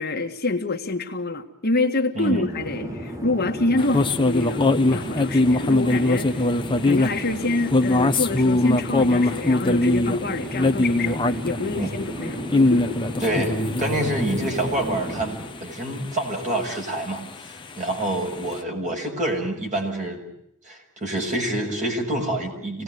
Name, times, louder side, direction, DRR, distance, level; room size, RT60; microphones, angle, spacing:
voice 1, 0.0-6.5 6.8-13.0, left 2 dB, 45° left, 3 dB, 1.8 m, -27 dB
voice 2, 2.1-2.5 11.8-11.9 13.2-20.2 20.6-22.8, right 1 dB, 35° right, 2 dB, 6.7 m, -27 dB
Chatter / Fixed-wing aircraft airplane, 2.2-15.7, equal, 15° right, 1.6 m, -34 dB
sound 1, 3.8-18.6, left 2 dB, 20° left, 1.2 m, -23 dB
27.5 x 19.0 x 9.4 m, 0.76 s
head